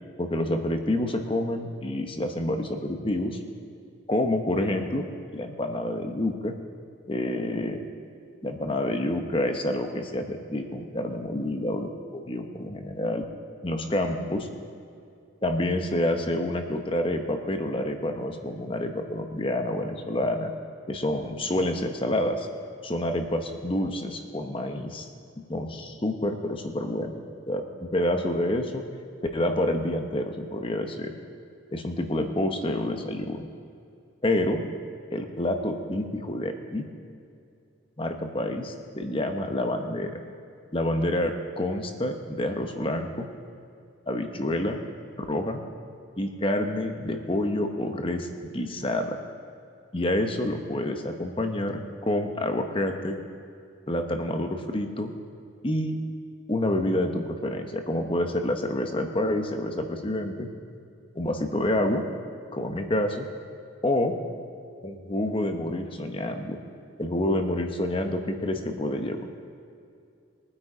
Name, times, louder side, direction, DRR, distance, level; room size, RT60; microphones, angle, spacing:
voice 1, 0.2-3.4 4.1-5.0 5.3-6.5 7.1-7.8 8.4-13.2 13.6-14.5 15.4-20.5 20.9-22.5 22.8-25.1 25.5-27.2 27.5-28.8 29.3-31.1 31.7-33.5 34.2-34.6 35.1-36.9 38.0-40.2 40.7-43.3 44.1-44.8 45.2-45.6 46.2-49.2 49.9-53.2 53.9-55.1 55.6-56.0 56.5-60.5 61.1-62.1 62.5-63.3 63.8-64.2 64.8-66.6 67.0-69.2, left 1 dB, 25° left, 5 dB, 0.9 m, -28 dB
22.0 x 8.6 x 5.0 m, 2.4 s
head